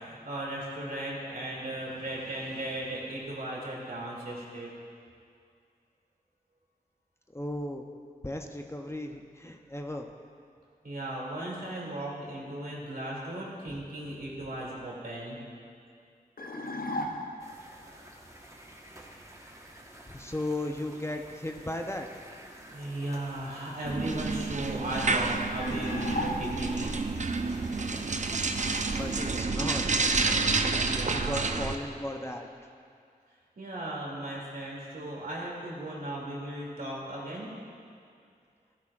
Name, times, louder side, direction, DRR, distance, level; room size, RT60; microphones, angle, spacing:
voice 1, 0.0-4.7 10.8-15.4 22.7-26.9 30.9-31.5 33.6-37.5, right 1 dB, 70° right, -4 dB, 2.6 m, -36 dB
voice 2, 7.3-7.9 8.2-10.1 13.7-13.8 20.1-22.1 28.9-30.1 31.1-32.5, left 1 dB, 15° left, 3 dB, 0.7 m, -36 dB
sound 1, 16.4-17.6 25.6-26.9, left 1 dB, 65° left, 0.8 m, -35 dB
sound 2, 17.4-29.4, right 1 dB, 20° right, 1.3 m, -51 dB
sound 3, 23.8-31.8, right 3 dB, 50° right, 0.6 m, -29 dB
13.5 x 11.5 x 2.5 m, 2.3 s
cardioid pair, 45°, 16 cm